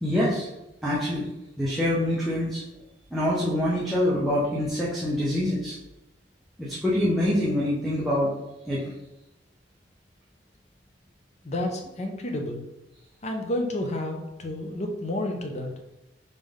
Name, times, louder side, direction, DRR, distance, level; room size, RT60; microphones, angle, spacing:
voice 1, 0.0-0.5 0.8-1.3 1.6-2.6 3.1-5.7 6.6-8.3 8.7-8.9, left 1 dB, ahead, -8 dB, 0.7 m, -25 dB
voice 2, 11.4-12.7 13.2-15.7, left 1 dB, 40° left, 3 dB, 0.6 m, -30 dB
4.0 x 3.6 x 3.6 m, 0.93 s
head